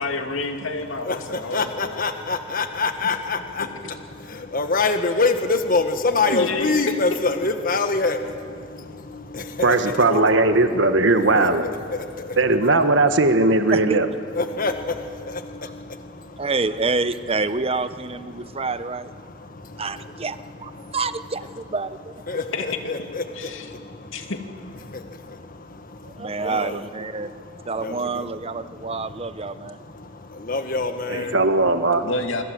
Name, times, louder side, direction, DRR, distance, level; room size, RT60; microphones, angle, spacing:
voice 1, 0.0-2.0 3.0-3.2 3.6-3.7 6.3-7.0 10.1-10.6 22.5-22.7 23.3-23.7 24.1-24.4 32.0-32.4, left 3 dB, 75° left, 5 dB, 2.7 m, -28 dB
voice 2, 1.0-10.0 11.3-11.5 11.9-12.4 14.3-16.5 18.3-18.7 19.2-21.0 22.3-24.3 24.8-26.8 27.2-28.3 28.5-31.4, left 3 dB, 45° left, 7 dB, 1.6 m, -27 dB
voice 3, 9.6-11.7 12.4-14.1 31.1-32.0, right 2 dB, 60° right, 8 dB, 1.4 m, -18 dB
voice 4, 16.4-19.1 19.8-22.1 26.0-29.8, right 3 dB, 30° right, 13 dB, 0.9 m, -27 dB
27.0 x 26.0 x 8.0 m, 2.2 s
head